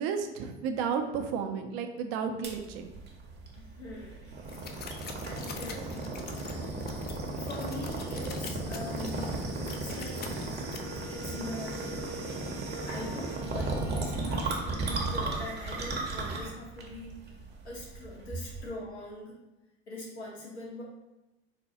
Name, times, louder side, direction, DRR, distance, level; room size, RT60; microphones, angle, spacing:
voice 1, 0.0-2.9, right 6 dB, 60° right, 6 dB, 0.5 m, -32 dB
sound 1, 2.4-18.7, right 2 dB, 35° right, 0.8 m, -35 dB
voice 2, 3.5-4.3 5.2-6.8 7.4-9.4 9.7-10.3 11.1-12.4 12.8-17.2 17.6-19.4 19.9-20.8, left 2 dB, 90° left, -3 dB, 0.9 m, -42 dB
sound 2, 4.4-10.8, left 6 dB, 30° left, 0.4 m, -45 dB
Wind instrument woodwind instrument, 10.6-15.3, right 1 dB, 60° left, 1.3 m, -46 dB
4.2 x 2.2 x 2.8 m, 1.0 s
hypercardioid pair, 70°, 32 cm